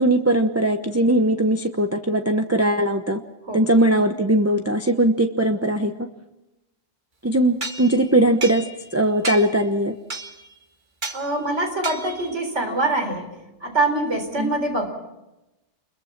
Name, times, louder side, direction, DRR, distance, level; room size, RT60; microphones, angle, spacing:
voice 1, 0.0-3.2 3.5-5.9 7.2-8.7 8.9-9.9 14.4-14.5, right 1 dB, 15° right, 5 dB, 1.0 m, -20 dB
sound 1, 7.6-8.9 9.2-9.7 10.1-10.5 11.0-11.2 11.8-12.3, right 2 dB, 45° right, 1.9 m, -32 dB
voice 2, 11.1-13.3 13.6-14.9, right 2 dB, 75° right, 5 dB, 4.6 m, -24 dB
28.0 x 22.0 x 6.0 m, 0.97 s
omnidirectional pair, 1.2 m